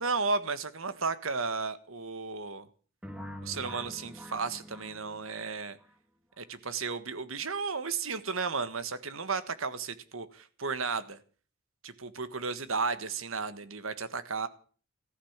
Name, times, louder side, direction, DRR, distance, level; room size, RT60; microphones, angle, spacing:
voice 1, 0.0-2.7 3.4-5.8 6.4-11.2 11.8-14.5, right 4 dB, 70° right, 13 dB, 1.5 m, -34 dB
sound 1, 3.0-5.9, equal, 5° right, 1.6 m, -45 dB
15.0 x 12.5 x 7.3 m, 0.42 s
head